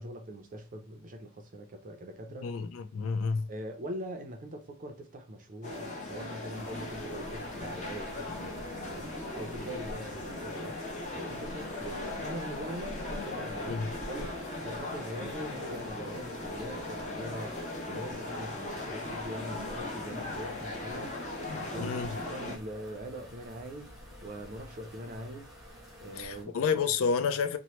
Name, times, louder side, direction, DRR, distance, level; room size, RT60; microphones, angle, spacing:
voice 1, 0.0-2.5 3.5-21.2 21.5-25.5 26.0-26.6, right 1 dB, 35° right, 0.5 m, -42 dB
voice 2, 2.4-3.5 13.7-13.8 21.8-22.1 26.2-27.6, left 5 dB, 65° left, 0.3 m, -30 dB
sound 1, 5.6-22.6, left 2 dB, 30° left, 0.7 m, -38 dB
sound 2, 6.5-26.4, equal, ahead, 0.8 m, -49 dB
2.9 x 2.1 x 3.0 m
head